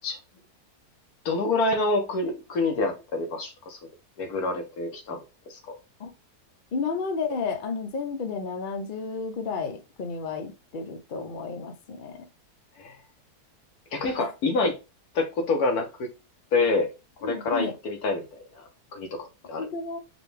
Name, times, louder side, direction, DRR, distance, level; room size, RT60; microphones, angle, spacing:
voice 1, 1.2-3.8 4.2-5.2 5.5-5.8 12.8-13.0 13.9-14.8 15.1-16.1 16.5-16.9 17.2-19.7, left 3 dB, 75° left, 1.4 m, -27 dB
voice 2, 6.7-12.3 14.2-14.3 17.2-17.7 19.6-20.0, left 4 dB, 55° left, 0.6 m, -32 dB
5.0 x 2.3 x 3.2 m
omnidirectional pair, 1.6 m